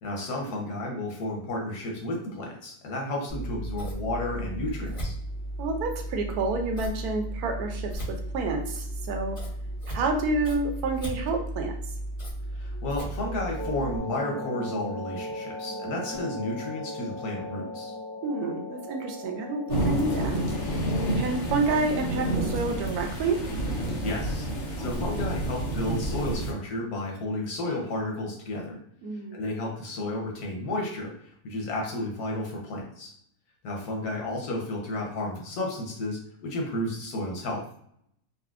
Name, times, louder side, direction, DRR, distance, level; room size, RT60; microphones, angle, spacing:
voice 1, 0.0-5.1 12.5-17.9 24.0-24.4 24.8-28.8 29.3-33.1 33.6-37.6, left 1 dB, 90° left, 0 dB, 1.4 m, -32 dB
Scissors, 3.3-14.0, right 1 dB, 30° left, 0.9 m, -35 dB
voice 2, 5.6-9.4 9.9-11.7 18.2-20.3 21.2-23.4 29.0-29.4, right 3 dB, 80° right, 3 dB, 1.1 m, -29 dB
sound 1, 13.6-25.1, left 1 dB, 5° left, 0.6 m, -39 dB
sound 2, 19.7-26.5, right 1 dB, 60° left, 0.9 m, -29 dB
4.1 x 2.0 x 2.4 m, 0.67 s
omnidirectional pair, 1.6 m